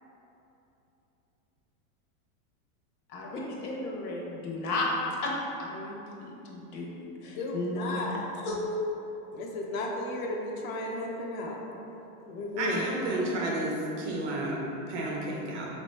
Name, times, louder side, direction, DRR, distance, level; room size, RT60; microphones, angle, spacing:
voice 1, 3.1-4.9 5.2-5.3 5.6-6.9 7.2-8.2 8.4-8.6, left 2 dB, 85° left, -3 dB, 1.1 m, -34 dB
voice 2, 7.3-8.1 9.3-11.6 12.3-12.8, left 2 dB, 65° left, -1 dB, 0.8 m, -34 dB
voice 3, 12.6-15.7, right 1 dB, 50° right, -3 dB, 0.8 m, -31 dB
4.1 x 3.0 x 3.3 m, 3.0 s
supercardioid pair, 165°, 43 cm